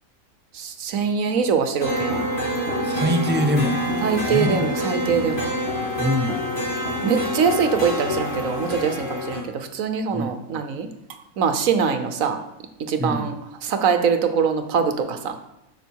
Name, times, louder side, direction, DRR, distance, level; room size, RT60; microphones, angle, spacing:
voice 1, 0.5-2.3 4.0-5.5 7.0-12.4 12.9-13.3 13.6-15.4, right 6 dB, 80° right, 7 dB, 1.2 m, -23 dB
sound 1, 1.8-9.4, left 1 dB, 40° left, 2.0 m, -26 dB
voice 2, 2.8-4.7 6.0-6.4 10.1-10.4 13.0-13.3, equal, 15° right, 5 dB, 0.4 m, -24 dB
12.5 x 5.0 x 4.6 m, 0.85 s
omnidirectional pair, 1.4 m